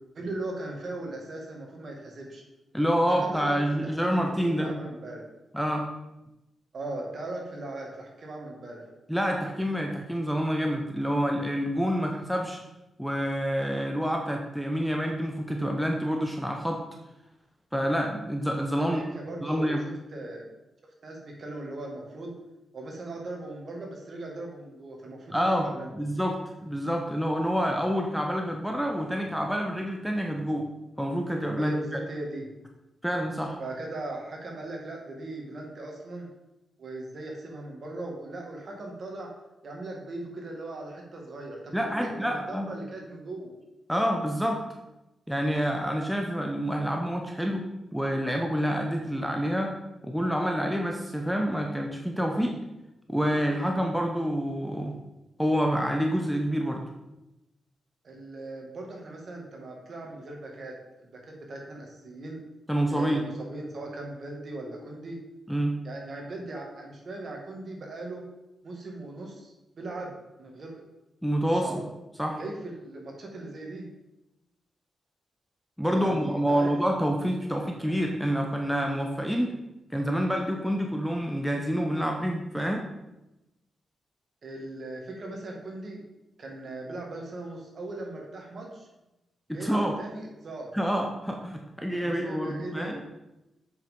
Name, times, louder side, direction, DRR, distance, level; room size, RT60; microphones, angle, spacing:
voice 1, 0.1-2.4 3.2-5.2 6.7-8.9 18.8-20.5 21.0-22.4 22.7-25.4 25.6-25.9 31.6-32.5 33.6-36.3 36.8-39.3 39.6-43.5 58.0-62.4 62.9-65.2 65.8-68.2 68.6-70.8 71.5-71.8 72.4-73.9 75.9-76.7 84.4-86.0 86.4-88.9 89.5-90.8 91.9-92.9, right 2 dB, 50° right, 0 dB, 2.1 m, -39 dB
voice 2, 2.7-4.7 5.5-5.9 9.1-12.6 13.0-16.8 17.7-19.0 19.4-19.8 25.3-25.7 25.9-30.7 31.0-31.8 33.0-33.6 41.7-42.7 43.9-44.6 45.3-47.6 47.9-49.7 50.0-52.6 53.1-54.9 55.4-56.8 62.7-63.2 65.5-65.8 71.2-71.7 72.2-72.4 75.8-79.5 79.9-82.9 89.5-90.0 90.7-93.0, equal, ahead, 1 dB, 0.8 m, -27 dB
7.7 x 5.5 x 5.3 m, 0.95 s
wide cardioid pair, 130°, 0 cm